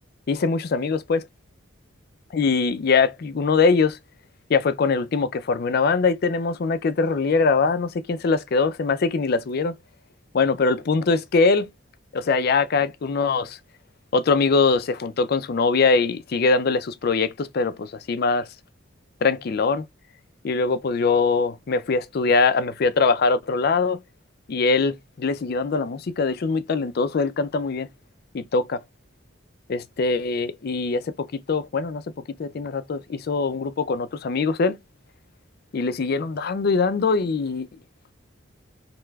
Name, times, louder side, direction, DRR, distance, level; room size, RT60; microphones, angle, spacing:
voice 1, 0.3-1.3 2.3-4.0 4.5-9.7 10.3-11.7 12.1-13.6 14.1-18.5 19.2-19.9 20.4-24.0 24.5-27.9 28.3-28.8 29.7-32.0 32.3-34.8 35.7-37.7, left 4 dB, 50° left, 0.4 m, -22 dB
3.3 x 2.8 x 2.2 m
head